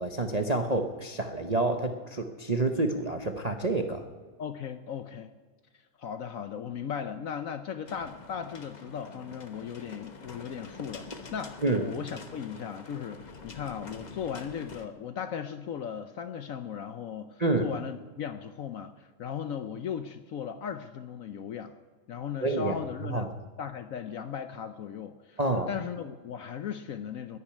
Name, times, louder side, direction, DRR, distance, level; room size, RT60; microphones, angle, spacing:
voice 1, 0.0-4.0 11.6-11.9 17.4-17.7 22.4-22.7 23.1-23.3 25.4-25.7, right 2 dB, 35° right, 5 dB, 0.6 m, -28 dB
voice 2, 4.4-5.3 6.0-21.8 22.1-23.3 23.6-25.4 25.7-27.4, left 7 dB, 65° left, 10 dB, 0.9 m, -37 dB
sound 1, 7.9-14.9, left 4 dB, 30° left, 0.9 m, -46 dB
11.0 x 10.5 x 9.7 m, 1.5 s
omnidirectional pair, 1.9 m